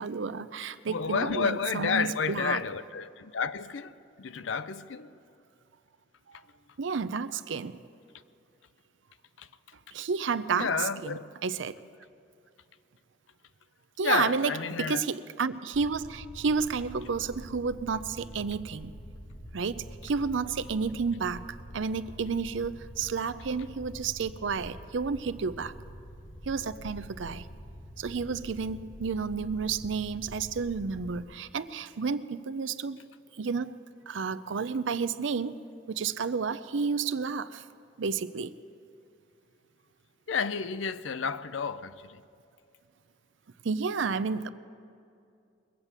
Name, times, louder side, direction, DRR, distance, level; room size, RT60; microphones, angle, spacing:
voice 1, 0.0-2.6 6.3-6.4 6.8-7.8 9.9-10.7 11.0-11.7 14.0-14.5 14.8-18.9 19.5-21.4 21.7-25.7 26.5-27.5 28.0-33.0 33.4-33.7 34.1-35.6 35.9-37.6 38.0-38.5 43.6-44.5, right 5 dB, 80° right, 0.5 m, -31 dB
voice 2, 0.9-5.1 9.4-9.5 10.5-11.2 14.0-15.0 40.3-42.2, left 6 dB, 85° left, 0.5 m, -31 dB
sound 1, 15.7-31.2, equal, 60° left, 1.8 m, -46 dB
22.0 x 8.2 x 7.3 m
head